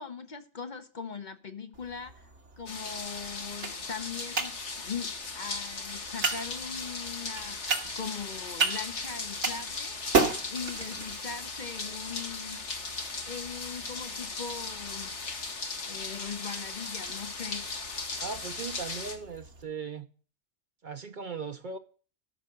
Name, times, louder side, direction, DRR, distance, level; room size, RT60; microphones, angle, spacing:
voice 1, 0.0-7.6 8.0-12.9 13.3-15.1 15.9-17.6, left 6 dB, 45° left, 0.9 m, -40 dB
sound 1, 1.7-19.6, right 4 dB, 75° right, 1.8 m, -36 dB
sound 2, 2.7-19.2, left 4 dB, 75° left, 1.8 m, -37 dB
voice 2, 18.2-20.1 20.8-21.8, right 5 dB, 50° right, 0.8 m, -38 dB
13.0 x 5.8 x 6.5 m
omnidirectional pair, 1.2 m